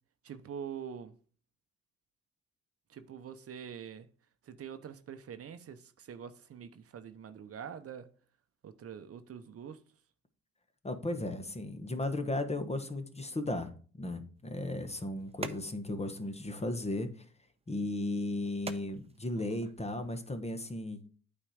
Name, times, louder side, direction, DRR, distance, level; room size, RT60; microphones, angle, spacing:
voice 1, 0.2-1.1 2.9-4.1 4.5-8.1 8.6-9.8, right 8 dB, 50° right, 0.8 m, -45 dB
voice 2, 10.8-13.7 14.0-17.1 17.7-21.1, left 2 dB, 20° left, 1.2 m, -35 dB
sound 1, 14.3-20.4, right 4 dB, 20° right, 0.8 m, -49 dB
8.7 x 4.4 x 4.9 m
cardioid pair, 90°, 30 cm